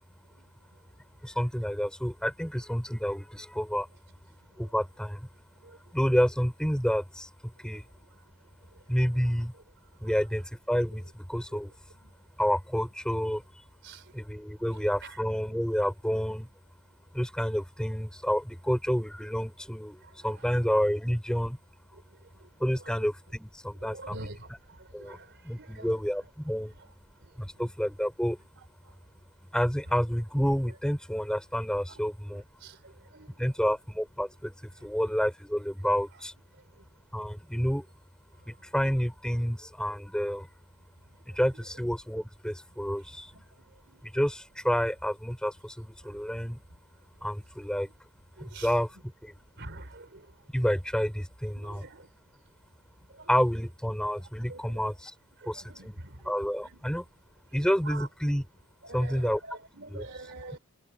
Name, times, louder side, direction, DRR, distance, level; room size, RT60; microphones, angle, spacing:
voice 1, 1.2-3.9 4.6-5.3 5.9-7.9 8.9-9.5 10.0-11.7 12.4-13.4 14.1-16.5 17.1-21.6 22.6-24.3 24.9-25.2 25.4-26.7 27.4-28.4 29.5-32.4 33.4-36.3 37.1-37.9 38.5-40.5 41.3-43.3 44.0-46.6 47.2-47.9 48.4-49.3 50.5-51.9 53.3-55.1 55.4-56.0 56.2-57.0 57.5-58.5 58.9-59.4 59.9-60.1, equal, 5° left, 5.2 m, -29 dB
voice 2, 23.8-24.4 25.0-25.3 25.6-25.8 32.6-32.8 33.1-33.3 43.9-44.0 48.4-48.7 49.6-50.2 51.6-52.1 53.2-53.3 54.5-54.6 55.6-55.9 57.9-58.0 58.8-60.6, right 2 dB, 50° right, 4.2 m, -44 dB
head